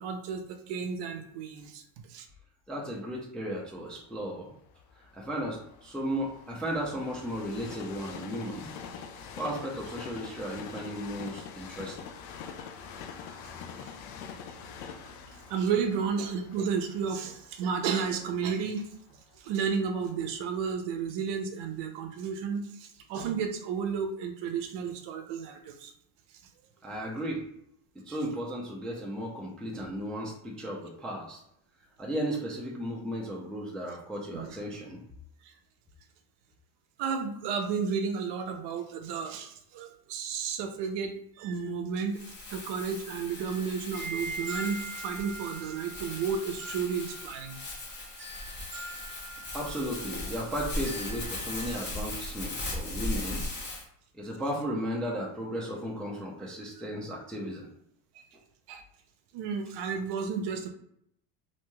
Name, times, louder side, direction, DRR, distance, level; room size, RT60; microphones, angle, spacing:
voice 1, 0.0-1.8 2.1-2.3 15.5-25.9 28.1-28.2 34.3-34.6 35.4-35.5 37.0-47.6 58.1-58.2 58.7-58.8 59.3-60.7, right 6 dB, 55° right, 5 dB, 0.6 m, -32 dB
voice 2, 2.7-4.5 5.0-8.7 9.3-12.0 26.8-27.4 28.1-31.4 32.0-35.0 49.5-53.4 54.1-57.7, equal, ahead, -2 dB, 0.3 m, -35 dB
Train, 3.9-19.8 20.4-20.5, left 6 dB, 75° left, 0.6 m, -45 dB
Crumpling crinkling, 42.1-53.8, left 2 dB, 20° left, 0.8 m, -38 dB
sound 1, 43.3-51.8, right 2 dB, 25° right, 0.9 m, -43 dB
2.9 x 2.7 x 2.2 m, 0.72 s
supercardioid pair, 105°, 49 cm